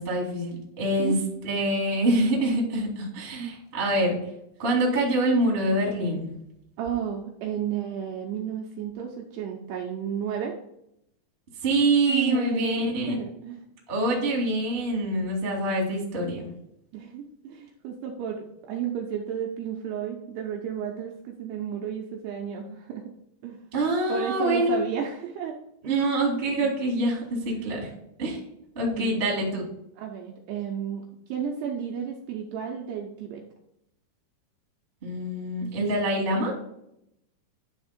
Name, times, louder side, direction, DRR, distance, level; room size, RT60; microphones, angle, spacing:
voice 1, 0.0-4.2 4.6-6.3 11.6-13.1 13.9-16.5 23.7-24.8 25.8-27.9 28.2-28.4 28.7-29.6 35.0-36.5, right 1 dB, 25° right, -3 dB, 1.2 m, -25 dB
voice 2, 6.8-10.5 12.1-13.6 16.9-23.0 23.4-23.6 24.1-25.6 25.8-26.1 26.6-26.7 27.2-27.3 27.5-27.7 28.9-29.3 30.0-33.4, right 8 dB, 80° right, 1 dB, 2.6 m, -33 dB
10.0 x 3.5 x 5.1 m, 0.78 s
omnidirectional pair, 5.4 m